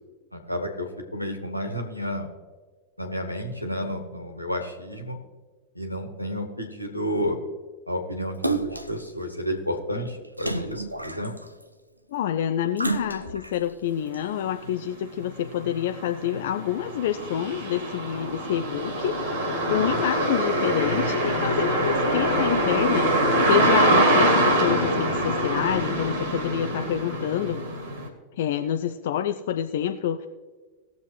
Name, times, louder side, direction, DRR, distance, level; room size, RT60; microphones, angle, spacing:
voice 1, 0.3-2.3 3.0-5.2 5.7-7.4 7.9-11.3 19.7-20.0, equal, 90° left, 3 dB, 1.5 m, -31 dB
Splash splatter, 8.4-9.0 10.4-11.6 12.8-13.6 14.1-14.2, right 2 dB, 90° right, 0.6 m, -29 dB
voice 2, 12.1-23.1 23.5-27.6 28.4-30.3, left 10 dB, 55° left, 6 dB, 0.5 m, -27 dB
sound 1, 14.7-14.8 15.2-28.1, right 1 dB, 55° right, 2.2 m, -24 dB
19.0 x 7.2 x 3.2 m, 1.4 s
figure-of-eight pair, 90°, 0 cm